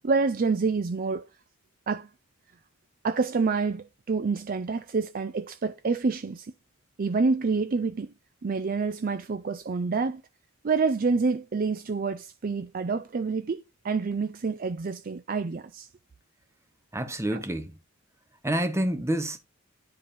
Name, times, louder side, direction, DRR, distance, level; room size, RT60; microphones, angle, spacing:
voice 1, 0.0-1.3 1.9-2.1 3.0-6.5 7.0-8.1 8.4-10.2 10.6-15.9 17.3-17.4, right 4 dB, 40° right, 0.4 m, -27 dB
voice 2, 16.9-17.7 18.4-19.4, right 1 dB, 15° right, 0.8 m, -28 dB
10.0 x 4.8 x 2.6 m
head